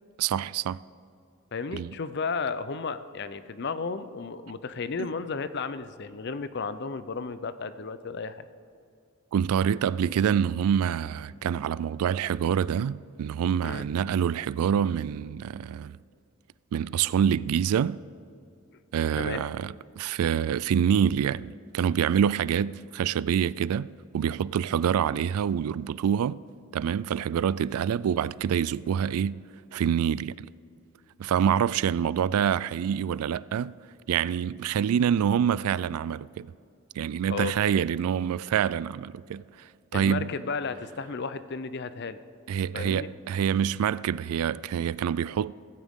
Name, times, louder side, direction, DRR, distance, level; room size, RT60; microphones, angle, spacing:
voice 1, 0.2-0.8 1.7-1.9 5.0-5.1 9.3-16.0 16.7-18.0 18.9-23.9 24.1-26.4 26.7-29.4 29.7-30.5 31.2-33.7 34.1-36.5 37.0-39.4 39.9-40.3 42.5-45.5, right 8 dB, 80° right, 0.3 m, -26 dB
voice 2, 1.5-8.4 13.6-13.9 19.2-19.4 37.3-37.5 39.9-42.2 42.7-43.1, left 4 dB, 50° left, 0.5 m, -33 dB
17.0 x 15.0 x 3.6 m
head